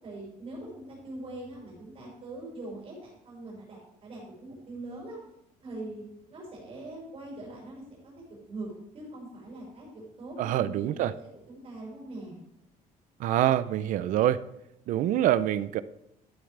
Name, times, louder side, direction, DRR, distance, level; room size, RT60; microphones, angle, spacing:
voice 1, 0.0-5.2 5.6-6.0 6.3-7.8 8.3-12.4, right 2 dB, 35° right, -4 dB, 5.3 m, -42 dB
voice 2, 10.4-11.1 13.2-14.4 14.9-15.8, right 12 dB, 65° right, 15 dB, 0.5 m, -25 dB
12.5 x 11.5 x 3.3 m, 0.84 s
cardioid pair, 170°, 15 cm